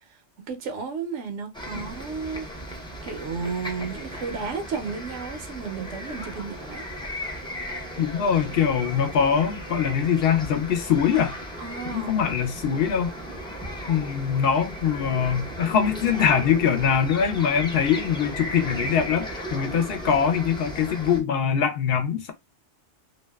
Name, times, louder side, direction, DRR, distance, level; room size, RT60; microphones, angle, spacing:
voice 1, 0.5-2.5 3.0-6.8 11.6-12.2, right 5 dB, 90° right, 1.0 m, -33 dB
sound 1, 1.5-21.2, equal, 5° left, 0.4 m, -36 dB
voice 2, 8.0-11.4 11.9-13.1 13.9-22.3, left 7 dB, 65° left, 0.7 m, -23 dB
2.6 x 2.1 x 2.2 m
omnidirectional pair, 1.2 m